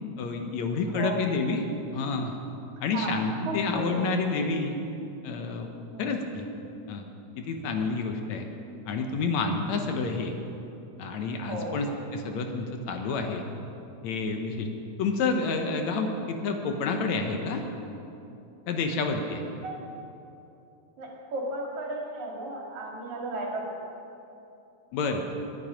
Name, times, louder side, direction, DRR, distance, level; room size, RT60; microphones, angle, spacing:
voice 1, 0.2-1.6 1.9-2.3 2.8-4.8 5.2-5.7 6.0-6.5 6.9-7.0 7.4-8.5 8.9-10.3 11.0-13.4 14.0-14.7 15.0-17.6 18.7-19.4 24.9-25.2, left 4 dB, 70° left, 4 dB, 2.2 m, -29 dB
voice 2, 0.9-1.4 2.9-3.1 3.5-4.1 5.9-6.1 11.5-11.8 19.6-19.8 21.0-23.7, right 2 dB, 75° right, -2 dB, 3.5 m, -34 dB
21.5 x 9.4 x 5.1 m, 2.8 s
omnidirectional pair, 3.4 m